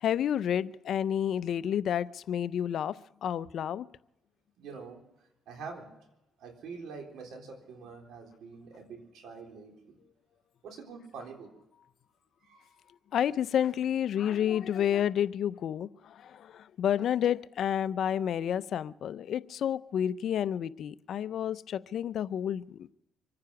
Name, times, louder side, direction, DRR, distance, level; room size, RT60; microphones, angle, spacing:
voice 1, 0.0-3.8 13.1-22.9, left 9 dB, 70° left, 17 dB, 0.5 m, -30 dB
voice 2, 4.6-5.0 5.5-6.0 6.4-10.0 10.6-11.6 12.4-12.7, right 5 dB, 80° right, 2 dB, 3.9 m, -45 dB
25.0 x 9.7 x 5.8 m, 0.90 s
cardioid pair, 90°, 0 cm